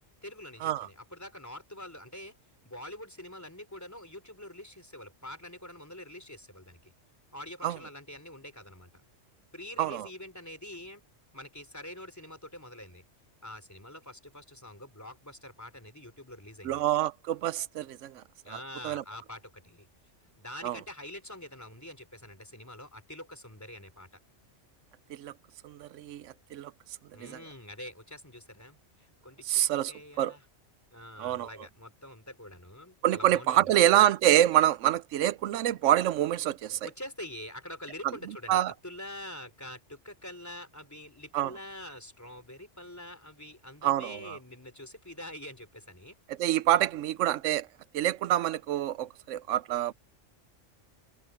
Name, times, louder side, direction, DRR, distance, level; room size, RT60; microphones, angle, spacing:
voice 1, 0.2-2.4 2.7-6.9 7.3-8.9 9.5-11.0 11.3-13.0 13.4-16.8 18.4-19.9 20.4-24.1 27.1-30.4 30.9-33.7 36.8-46.2, left 1 dB, 15° left, 3.7 m, -45 dB
voice 2, 16.6-18.6 18.8-19.0 20.6-20.8 25.1-25.3 25.6-26.7 27.2-27.4 29.5-30.3 31.2-31.5 33.0-36.9 38.0-38.7 41.3-41.5 43.8-44.4 46.3-47.7 47.9-49.9, right 12 dB, 90° right, 0.9 m, -26 dB
omnidirectional pair, 1.2 m